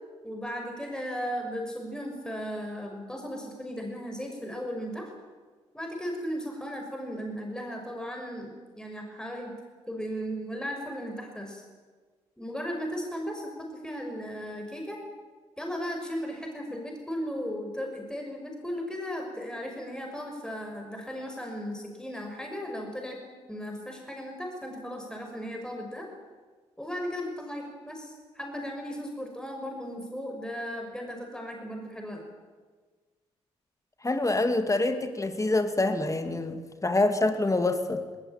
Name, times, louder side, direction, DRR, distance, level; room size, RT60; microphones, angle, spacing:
voice 1, 0.2-5.1 5.7-9.5 9.9-11.6 12.4-15.0 15.6-23.2 23.5-26.1 26.8-32.2, equal, 5° left, 2 dB, 5.9 m, -36 dB
voice 2, 34.0-38.0, left 2 dB, 20° left, 7 dB, 2.5 m, -26 dB
20.0 x 19.5 x 9.0 m, 1.4 s
hypercardioid pair, 40°, 14 cm